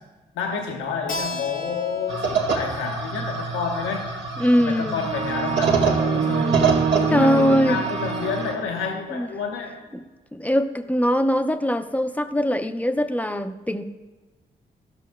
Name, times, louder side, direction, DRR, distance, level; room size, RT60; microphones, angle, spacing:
voice 1, 0.3-4.1 4.6-9.7, left 5 dB, 90° left, 1 dB, 0.9 m, -29 dB
Keyboard (musical), 1.1-6.4, left 5 dB, 45° left, 0.9 m, -36 dB
sound 1, 2.1-8.5, right 5 dB, 65° right, 1.1 m, -26 dB
voice 2, 4.4-5.0 7.1-7.8 9.1-9.3 10.3-13.9, equal, 10° left, 8 dB, 0.6 m, -21 dB
sound 2, 5.0-8.9, right 6 dB, 35° right, 0.4 m, -25 dB
13.0 x 6.3 x 2.2 m, 1.2 s
supercardioid pair, 45°, 20 cm